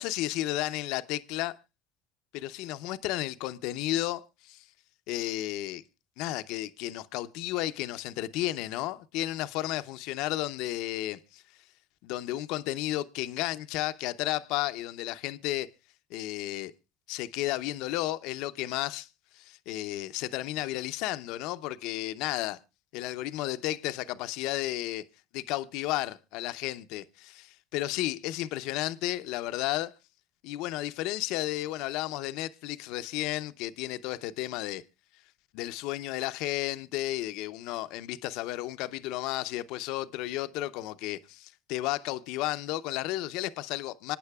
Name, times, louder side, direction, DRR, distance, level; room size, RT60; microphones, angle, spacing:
voice 1, 0.0-1.5 2.3-4.6 5.1-5.8 6.2-11.4 12.0-15.7 16.1-16.7 17.1-19.1 19.3-22.6 22.9-25.0 25.3-29.9 30.4-34.8 35.5-44.2, left 15 dB, 70° left, 0.7 m, -33 dB
26.0 x 9.4 x 2.4 m
supercardioid pair, 95°, 0 cm